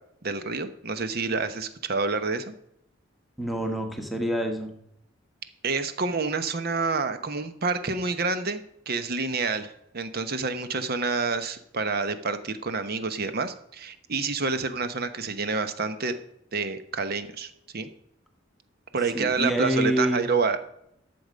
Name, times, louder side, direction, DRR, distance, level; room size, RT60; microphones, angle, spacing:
voice 1, 0.2-2.5 5.6-16.1 16.5-17.9 18.9-20.6, right 4 dB, 55° right, 10 dB, 0.9 m, -28 dB
voice 2, 3.4-4.7 19.1-20.2, right 1 dB, ahead, 3 dB, 1.3 m, -26 dB
11.5 x 7.1 x 5.1 m, 0.77 s
head